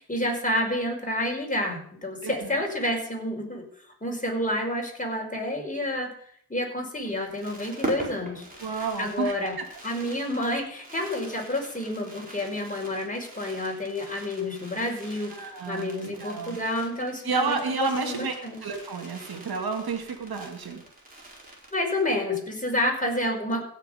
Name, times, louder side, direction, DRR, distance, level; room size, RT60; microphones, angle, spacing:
voice 1, 0.0-3.6 4.0-6.1 6.5-8.4 8.8-9.5 9.8-17.6 18.0-18.6 21.7-23.6, left 1 dB, 20° left, 1 dB, 5.0 m, -29 dB
voice 2, 2.2-2.6 8.6-9.6 15.4-16.6 17.2-18.3 18.6-20.8, right 4 dB, 70° right, 4 dB, 2.4 m, -31 dB
Fireworks, 7.0-22.2 22.5-22.6 22.7-23.0, right 1 dB, 20° right, 4.7 m, -42 dB
16.5 x 6.7 x 5.3 m, 0.62 s
cardioid pair, 50°, 39 cm